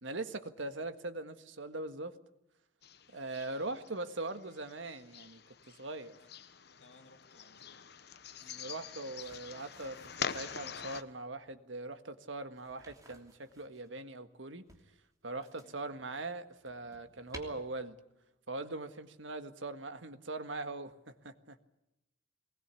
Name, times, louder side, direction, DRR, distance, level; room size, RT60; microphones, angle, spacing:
voice 1, 0.0-2.2 3.1-5.4 5.7-6.2 8.4-14.7 15.2-18.0 18.5-21.6, right 2 dB, 85° right, 1.7 m, -41 dB
sound 1, 2.8-11.0, left 7 dB, 60° left, 1.0 m, -45 dB
voice 2, 6.7-7.9 8.4-8.9 15.6-15.7, left 2 dB, 75° left, 2.6 m, -62 dB
sound 2, 9.2-11.1 12.5-13.9 14.7-15.9 16.4-17.4, right 2 dB, 20° right, 3.0 m, -56 dB
22.5 x 20.0 x 8.4 m
head